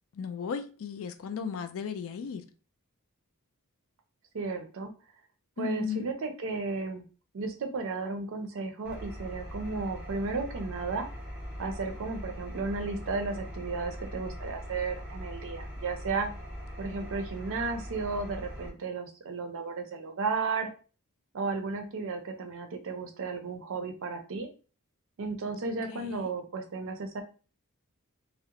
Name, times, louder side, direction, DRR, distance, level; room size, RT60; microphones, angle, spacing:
voice 1, 0.1-2.4 5.6-6.1 25.6-26.3, left 6 dB, 65° left, 0.3 m, -36 dB
voice 2, 4.3-4.9 5.6-7.0 7.3-11.1 11.6-16.3 16.8-20.7 21.3-24.5 25.2-27.2, right 4 dB, 65° right, 0.5 m, -34 dB
Engine, 8.8-18.7, equal, 5° right, 0.7 m, -41 dB
2.4 x 2.0 x 2.8 m
head